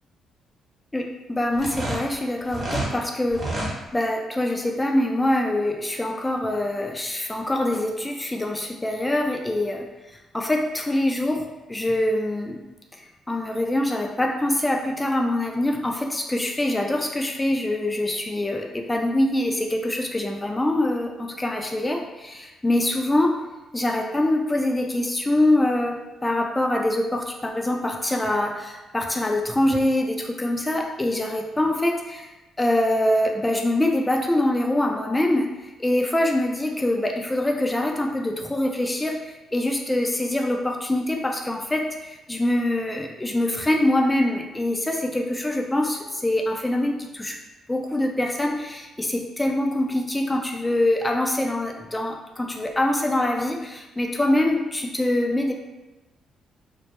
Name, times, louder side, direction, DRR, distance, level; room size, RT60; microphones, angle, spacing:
voice 1, 0.9-3.5 3.9-9.9 10.3-12.6 12.9-23.4 23.7-32.3 32.6-47.4 47.7-55.5, left 1 dB, 15° left, 1 dB, 0.4 m, -24 dB
sound 1, 1.5-2.9 3.3-3.7, right 1 dB, 35° right, 0.8 m, -28 dB
2.2 x 2.1 x 2.9 m, 1.1 s
cardioid pair, 90°, 0 cm